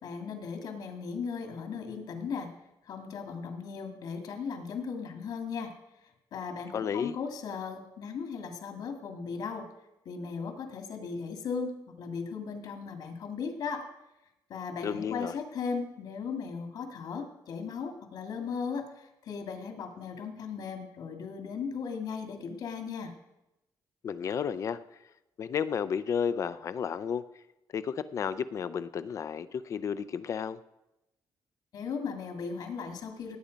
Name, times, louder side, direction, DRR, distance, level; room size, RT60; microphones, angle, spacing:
voice 1, 0.0-2.5 2.9-5.7 6.3-9.7 10.1-13.8 14.5-23.1 31.7-33.4, left 5 dB, 60° left, 5 dB, 2.0 m, -37 dB
voice 2, 6.7-7.2 14.8-15.3 24.0-24.8 25.4-27.2 27.7-30.6, left 7 dB, 40° left, 14 dB, 0.5 m, -32 dB
17.5 x 8.7 x 5.1 m, 0.93 s
cardioid pair, 180°, 8 cm